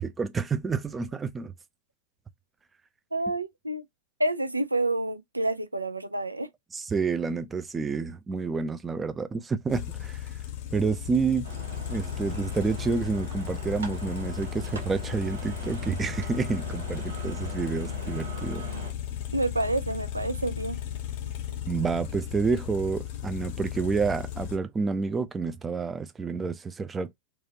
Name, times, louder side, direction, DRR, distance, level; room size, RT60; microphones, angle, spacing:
voice 1, 0.0-1.5 6.7-10.3 10.7-11.5 11.9-18.7 21.7-27.1, right 4 dB, 15° right, 0.4 m, -29 dB
voice 2, 3.1-3.8 4.2-6.5 19.3-20.8, right 2 dB, 85° right, 0.3 m, -28 dB
sound 1, 9.7-24.6, left 10 dB, 50° left, 0.6 m, -35 dB
sound 2, 11.4-18.9, right 4 dB, 70° right, 1.0 m, -42 dB
3.1 x 2.4 x 2.7 m
figure-of-eight pair, 90°, 0 cm